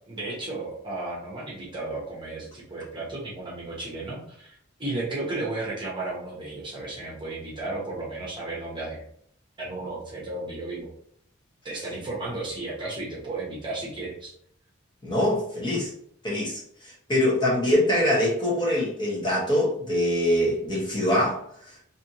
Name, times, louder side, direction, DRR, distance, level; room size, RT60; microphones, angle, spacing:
voice 1, 0.1-9.0 9.6-10.9 11.6-14.3, right 2 dB, 25° right, -4 dB, 0.9 m, -34 dB
voice 2, 15.0-15.9 16.2-21.8, left 1 dB, 20° left, -5 dB, 1.1 m, -24 dB
3.4 x 2.8 x 2.8 m, 0.66 s
head